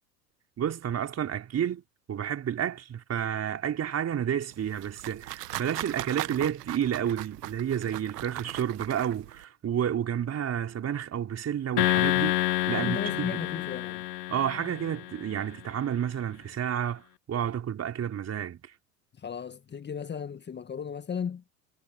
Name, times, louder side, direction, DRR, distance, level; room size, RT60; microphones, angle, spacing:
voice 1, 0.6-1.8 2.1-12.4 12.7-13.4 14.3-18.6, right 9 dB, 30° right, 4.5 m, -30 dB
sound 1, 4.5-9.4, right 16 dB, 70° right, 1.2 m, -39 dB
sound 2, 11.8-15.2, left 15 dB, 70° left, 2.1 m, -28 dB
voice 2, 12.6-14.1 19.1-21.4, left 7 dB, 20° left, 1.7 m, -35 dB
hypercardioid pair, 85°, 49 cm